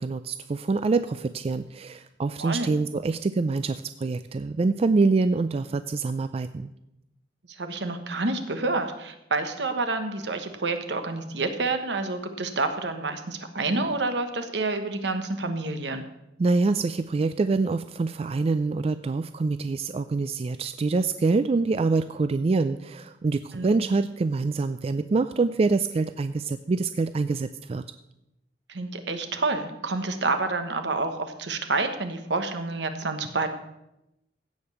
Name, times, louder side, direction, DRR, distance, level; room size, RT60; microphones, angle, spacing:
voice 1, 0.0-6.7 16.4-27.8, right 3 dB, 35° right, 11 dB, 0.3 m, -25 dB
voice 2, 7.5-16.0 23.5-23.7 28.7-33.5, right 3 dB, 70° right, 7 dB, 1.2 m, -28 dB
16.0 x 5.3 x 7.0 m, 0.89 s
head